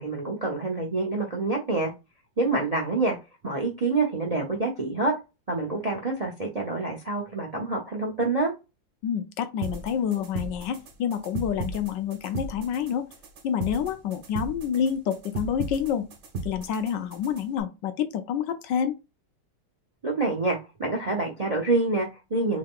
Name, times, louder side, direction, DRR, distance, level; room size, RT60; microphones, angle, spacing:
voice 1, 0.0-1.9 2.4-3.2 3.4-5.1 5.5-8.5 20.0-22.6, right 3 dB, 40° right, 0.5 m, -27 dB
voice 2, 9.0-13.1 13.4-16.1 16.4-19.0, left 8 dB, 75° left, 1.3 m, -28 dB
sound 1, 9.6-17.6, right 3 dB, 60° right, 1.4 m, -37 dB
3.7 x 3.3 x 3.6 m
omnidirectional pair, 2.1 m